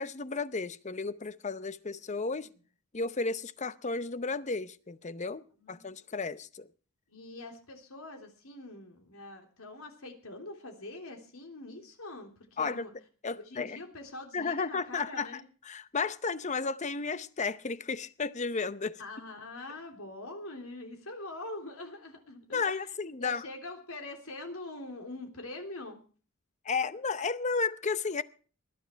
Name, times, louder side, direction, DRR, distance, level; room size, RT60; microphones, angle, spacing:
voice 1, 0.0-2.5 2.9-6.7 12.6-12.9 13.2-13.8 14.3-19.0 22.5-23.4 26.6-28.2, left 4 dB, 35° left, 0.7 m, -33 dB
voice 2, 5.6-5.9 7.1-12.9 13.4-15.4 19.0-26.0, left 2 dB, 80° left, 3.4 m, -44 dB
20.0 x 11.5 x 4.6 m
head